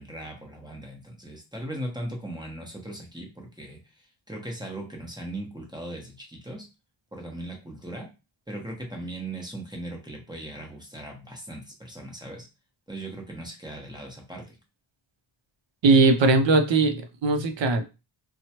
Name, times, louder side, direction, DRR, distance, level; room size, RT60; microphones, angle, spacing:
voice 1, 0.0-6.7 7.1-8.1 8.5-12.5 12.9-14.6, right 1 dB, 10° right, 0 dB, 1.0 m, -38 dB
voice 2, 15.8-17.8, right 3 dB, 65° right, 6 dB, 0.7 m, -20 dB
2.8 x 2.3 x 2.9 m, 0.29 s
cardioid pair, 55°, 48 cm